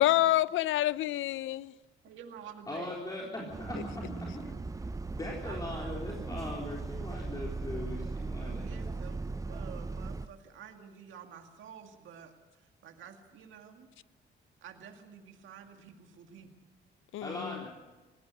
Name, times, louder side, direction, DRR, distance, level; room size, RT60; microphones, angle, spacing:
voice 1, 0.0-1.7 17.1-17.6, left 14 dB, 80° left, 0.6 m, -27 dB
voice 2, 2.0-3.4 5.4-6.2 8.4-12.3 12.8-13.9 14.6-16.5, right 7 dB, 75° right, 2.1 m, -50 dB
voice 3, 2.7-4.4 5.1-8.9 17.2-17.7, left 1 dB, 20° left, 4.0 m, -40 dB
Bus, 3.5-10.3, right 3 dB, 15° right, 0.7 m, -38 dB
19.0 x 16.5 x 8.1 m
cardioid pair, 90°, 20 cm